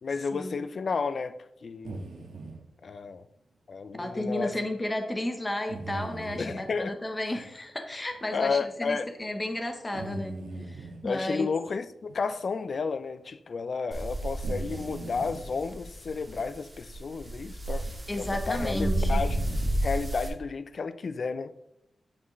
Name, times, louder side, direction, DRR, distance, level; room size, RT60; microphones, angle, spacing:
voice 1, 0.0-2.0 2.8-3.3 3.7-4.6 6.4-6.9 7.3-7.4 8.3-9.1 11.0-19.4 19.8-21.5, left 5 dB, 45° left, 12 dB, 0.3 m, -32 dB
sound 1, 1.8-2.6 4.5-4.6 5.7-6.7 7.3-7.4 8.1-8.2 9.9-11.0 12.1-12.2 12.7-12.8 14.4-15.4 16.3-16.5 17.4-17.6 18.5-19.7, right 2 dB, 80° right, 1.2 m, -39 dB
voice 2, 3.9-11.5 18.1-19.2, left 1 dB, 15° left, 4 dB, 0.7 m, -33 dB
sound 2, 13.9-20.3, right 1 dB, 10° right, 1.7 m, -32 dB
8.4 x 7.3 x 3.1 m, 0.84 s
wide cardioid pair, 175°, 0 cm